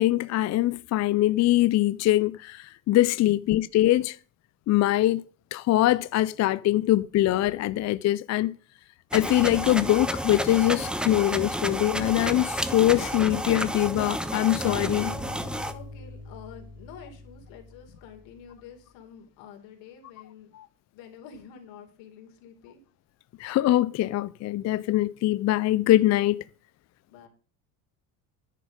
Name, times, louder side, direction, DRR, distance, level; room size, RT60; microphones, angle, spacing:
voice 1, 0.0-4.2 4.7-5.2 5.5-8.6 9.1-15.1 20.5-20.7 23.4-26.4, left 15 dB, 40° left, 0.4 m, -23 dB
sound 1, 9.1-15.7, equal, ahead, 1.0 m, -31 dB
sound 2, 14.6-17.9, left 2 dB, 20° right, 4.6 m, -40 dB
voice 2, 15.7-20.5 20.9-22.8 27.1-27.3, left 7 dB, 75° left, 3.8 m, -47 dB
10.0 x 9.9 x 5.2 m
supercardioid pair, 100°, 45 cm